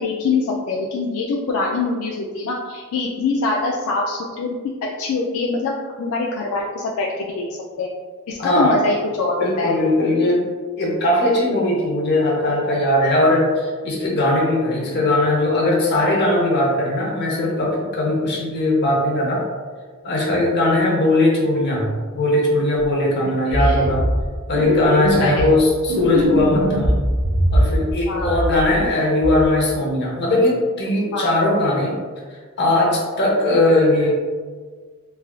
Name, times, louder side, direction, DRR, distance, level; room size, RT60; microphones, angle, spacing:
voice 1, 0.0-4.6 5.0-5.7 6.0-7.4 7.8-7.9 8.3-9.8 23.2-23.8 25.2-25.6 28.1-28.4 31.1-31.4, left 3 dB, 70° left, -2 dB, 0.3 m, -24 dB
voice 2, 8.4-8.9 9.4-10.5 10.8-19.4 20.0-21.9 22.1-24.1 24.5-27.0 27.5-32.0 32.6-34.1, left 1 dB, 45° left, -2 dB, 0.7 m, -19 dB
sound 1, 22.8-22.9 23.5-24.3 24.5-25.6 25.9-27.9 28.2-28.9 29.2-29.5, equal, 75° right, 0.6 m, -20 dB
3.3 x 2.3 x 2.3 m, 1.5 s
head